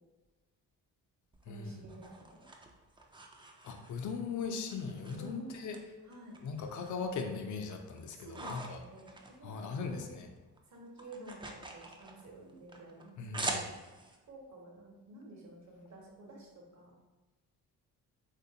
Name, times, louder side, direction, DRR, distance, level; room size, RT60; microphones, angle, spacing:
sound 1, 1.3-4.2 4.7-5.8 6.1-7.1 7.5-10.1 10.4-14.2, right 2 dB, 10° right, 0.4 m, -44 dB
voice 1, 1.5-2.5 5.1-5.6 6.1-6.4 8.1-10.2 10.7-13.7 14.2-16.9, right 1 dB, 40° right, -1 dB, 1.0 m, -51 dB
voice 2, 3.6-5.8 6.4-8.8 9.4-10.3 13.2-13.6, left 5 dB, 45° left, 5 dB, 0.5 m, -39 dB
3.3 x 2.6 x 2.8 m, 1.2 s
supercardioid pair, 50°, 41 cm